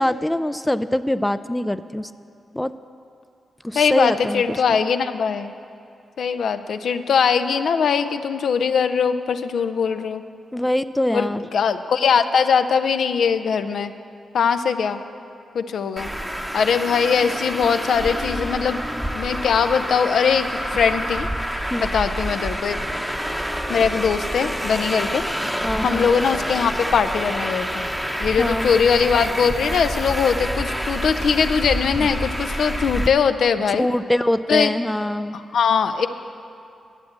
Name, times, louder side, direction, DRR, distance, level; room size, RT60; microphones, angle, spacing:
voice 1, 0.0-2.1 2.5-2.7 3.6-4.4 4.7-4.9 10.5-11.4 21.7-21.8 25.6-26.1 28.4-28.7 33.8-35.4, left 1 dB, 10° left, 12 dB, 0.4 m, -23 dB
voice 2, 3.7-5.5 6.2-10.2 11.1-13.9 14.3-15.0 15.5-16.1 16.5-18.8 19.1-21.3 21.8-22.8 23.7-25.2 25.8-27.9 28.2-33.9 34.5-34.7 35.3-36.1, left 6 dB, 75° left, 9 dB, 0.5 m, -21 dB
Traffic noise roadway noise, 16.0-33.1, equal, 5° right, 0.9 m, -27 dB
11.5 x 7.4 x 8.6 m, 2.5 s
cardioid pair, 60°, 0 cm